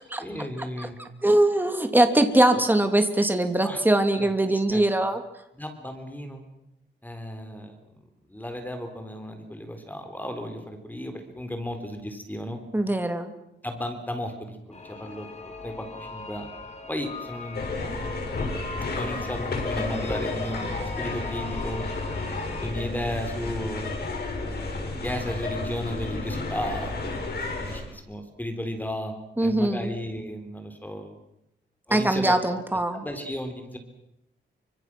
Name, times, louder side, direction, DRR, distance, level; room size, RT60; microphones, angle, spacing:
voice 1, 0.2-1.0 3.6-3.8 4.1-4.3 4.7-4.8 5.6-6.4 7.0-7.8 8.3-12.6 13.6-16.5 16.9-18.4 18.9-21.9 22.6-24.0 25.0-27.0 27.6-31.2 31.9-32.6 32.9-33.8, left 1 dB, 10° left, 6 dB, 3.9 m, -34 dB
voice 2, 0.8-5.2 12.7-13.3 29.4-29.9 31.9-33.0, right 1 dB, 10° right, 6 dB, 3.0 m, -22 dB
sound 1, 14.7-22.7, left 3 dB, 35° left, 4.0 m, -40 dB
sound 2, 17.5-27.8, left 3 dB, 60° left, 6.7 m, -32 dB
29.0 x 25.5 x 6.2 m, 0.83 s
wide cardioid pair, 115°, 19 cm